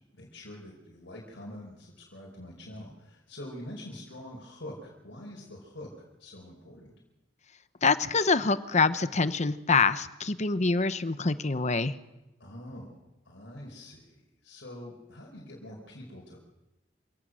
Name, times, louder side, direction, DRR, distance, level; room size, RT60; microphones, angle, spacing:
voice 1, 0.1-5.9 6.2-7.0 12.4-16.4, left 1 dB, 70° left, -1 dB, 4.9 m, -45 dB
voice 2, 7.8-11.9, left 4 dB, 40° left, 12 dB, 0.9 m, -25 dB
27.0 x 17.5 x 6.4 m, 1.0 s
head